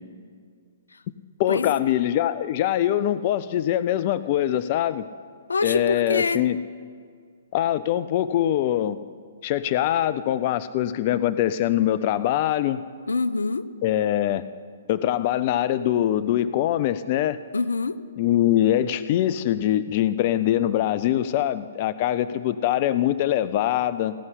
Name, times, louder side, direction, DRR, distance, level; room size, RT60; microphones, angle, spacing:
voice 1, 1.4-5.1 5.6-6.6 7.5-9.0 9.4-12.8 13.8-14.4 14.9-17.4 18.2-24.1, left 12 dB, 45° left, 15 dB, 0.4 m, -23 dB
voice 2, 5.5-6.4 13.1-13.7 17.5-18.0, left 4 dB, 85° left, 15 dB, 0.6 m, -25 dB
16.5 x 5.6 x 9.7 m, 2.1 s
hypercardioid pair, 130°, 0 cm